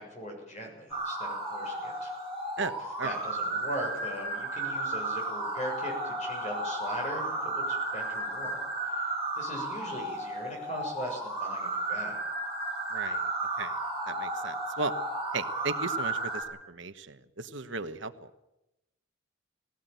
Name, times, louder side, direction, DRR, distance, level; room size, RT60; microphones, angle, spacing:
voice 1, 0.0-2.1 2.6-2.7 3.0-9.1 9.4-12.2, equal, 35° left, 1 dB, 6.9 m, -39 dB
sound 1, 0.9-16.4, right 2 dB, 5° left, 7.4 m, -33 dB
voice 2, 2.6-3.1 12.9-13.3 13.6-13.8 14.1-14.9 15.3-18.3, right 3 dB, 65° right, 10 dB, 1.1 m, -36 dB
19.0 x 17.5 x 9.2 m, 0.93 s
head